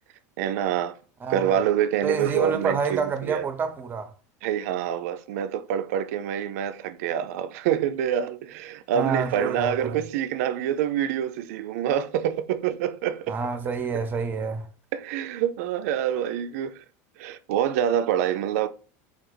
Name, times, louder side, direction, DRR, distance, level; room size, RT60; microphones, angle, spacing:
voice 1, 0.4-0.9 1.3-3.5 4.4-13.4 14.9-16.8 17.2-18.7, right 9 dB, 80° right, 0.3 m, -26 dB
voice 2, 1.2-1.5 2.0-4.1 8.9-9.9 13.3-14.7, right 5 dB, 25° right, 0.6 m, -28 dB
3.4 x 2.4 x 3.1 m
supercardioid pair, 125°, 8 cm